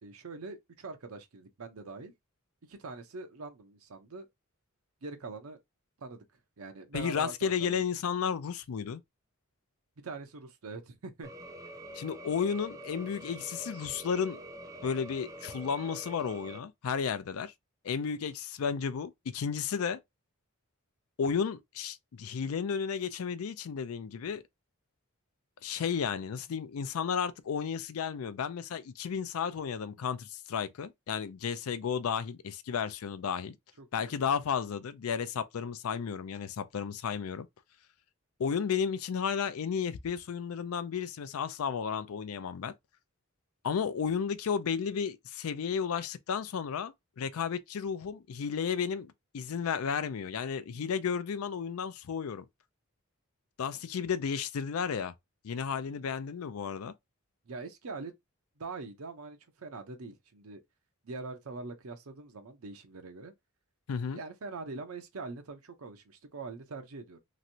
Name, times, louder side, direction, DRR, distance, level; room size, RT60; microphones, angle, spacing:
voice 1, 0.0-2.1 2.7-4.3 5.0-5.6 6.0-6.2 6.6-7.8 10.0-11.3 33.8-34.2 53.7-53.8 57.5-58.1 58.6-60.6 61.0-63.3 63.9-67.2, right 3 dB, 90° right, 0.7 m, -43 dB
voice 2, 6.9-9.0 11.9-14.4 14.8-17.5 17.8-20.0 21.2-24.4 25.6-33.6 33.9-37.5 38.4-42.7 43.6-52.5 53.6-55.1 55.4-56.9 63.9-64.2, left 6 dB, 85° left, 0.4 m, -33 dB
sound 1, 11.2-16.6, right 1 dB, 15° right, 0.5 m, -46 dB
3.1 x 2.6 x 2.7 m
head